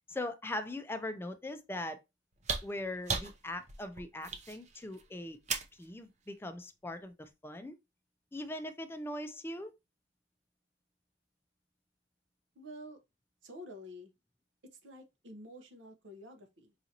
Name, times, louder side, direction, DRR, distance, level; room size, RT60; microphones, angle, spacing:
voice 1, 0.1-2.0 2.6-5.4 5.7-7.8 8.3-9.7, left 1 dB, 10° left, 0.4 m, -40 dB
sound 1, 2.3-5.9 7.2-7.3, right 5 dB, 40° right, 0.6 m, -37 dB
voice 2, 12.5-13.0 13.4-14.1 14.6-16.7, equal, 85° right, 0.9 m, -49 dB
4.9 x 2.6 x 2.8 m
head